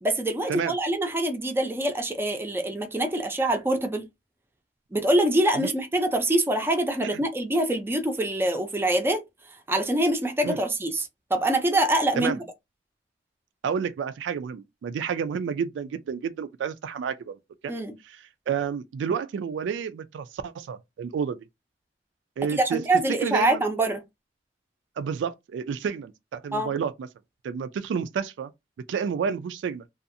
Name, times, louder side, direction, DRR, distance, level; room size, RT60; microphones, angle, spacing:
voice 1, 0.0-4.1 4.9-9.2 9.7-12.4 17.7-17.9 22.6-24.0 26.5-26.7, right 1 dB, 15° right, 0.5 m, -25 dB
voice 2, 13.6-17.4 17.6-17.7 18.0-21.5 22.4-22.8 23.1-23.6 25.0-27.1 27.4-28.5 28.9-29.8, right 7 dB, 75° right, 0.3 m, -30 dB
2.6 x 2.4 x 2.5 m
head